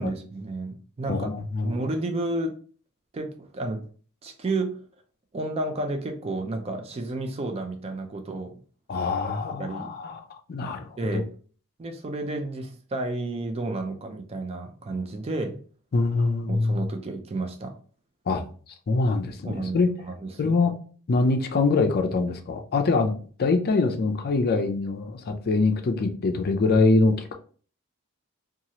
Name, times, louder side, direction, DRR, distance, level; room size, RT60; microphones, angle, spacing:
voice 1, 0.0-2.5 3.1-3.9 4.2-4.7 5.3-8.5 9.6-9.9 11.0-11.3 11.8-15.6 16.5-17.7 19.4-19.8 20.0-20.5, right 2 dB, 30° right, 0.4 m, -31 dB
voice 2, 1.1-1.8 8.9-10.2 10.5-11.2 15.9-16.8 18.3-18.4 18.9-19.9 20.4-20.7 21.1-23.1 23.4-27.3, left 3 dB, 45° left, 0.4 m, -24 dB
2.9 x 2.3 x 2.8 m
head